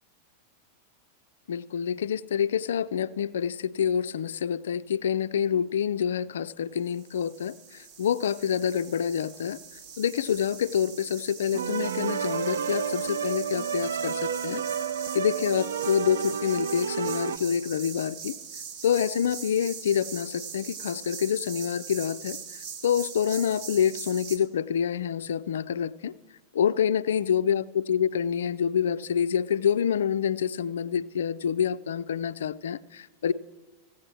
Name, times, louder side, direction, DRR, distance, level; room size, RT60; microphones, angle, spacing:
voice 1, 1.5-9.6 10.0-14.6 15.1-18.4 18.8-26.1 26.5-33.3, left 8 dB, 65° left, 17 dB, 0.3 m, -27 dB
sound 1, 6.9-24.4, right 6 dB, 45° right, 1.0 m, -42 dB
sound 2, 11.5-17.4, right 7 dB, 65° right, 0.3 m, -30 dB
15.5 x 8.5 x 4.5 m, 1.1 s
figure-of-eight pair, 90°, 0 cm